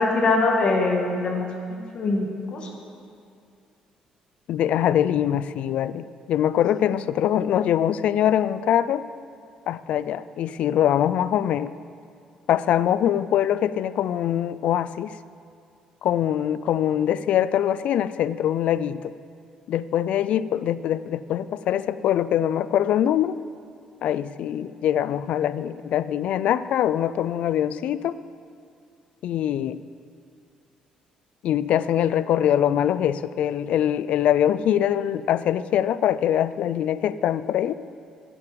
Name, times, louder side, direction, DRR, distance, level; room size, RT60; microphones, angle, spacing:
voice 1, 0.0-2.7, left 3 dB, 45° left, 1 dB, 2.0 m, -23 dB
voice 2, 4.5-9.1 9.7-11.7 12.5-15.2 16.0-19.1 19.7-23.4 24.0-28.1 29.2-29.8 31.4-37.7, left 10 dB, 65° left, 16 dB, 0.4 m, -23 dB
13.5 x 12.0 x 5.2 m, 2.3 s
cardioid pair, 145°, 2 cm